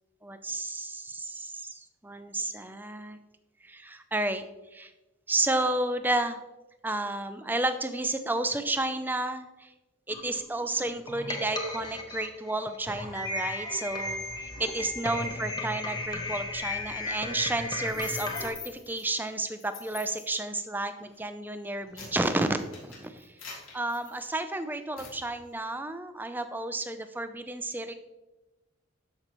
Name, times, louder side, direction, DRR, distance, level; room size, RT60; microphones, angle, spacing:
voice 1, 0.2-3.2 3.6-4.9 5.3-6.4 6.8-9.7 10.1-23.3 23.7-27.9, right 2 dB, 10° right, 9 dB, 0.4 m, -32 dB
sound 1, 10.1-18.5, left 2 dB, 20° left, 0.9 m, -35 dB
sound 2, 17.8-19.0 19.6-20.3 21.0-21.2 21.6-24.5 25.0-25.2, left 5 dB, 75° left, 3.1 m, -44 dB
13.0 x 5.5 x 3.0 m, 1.1 s
head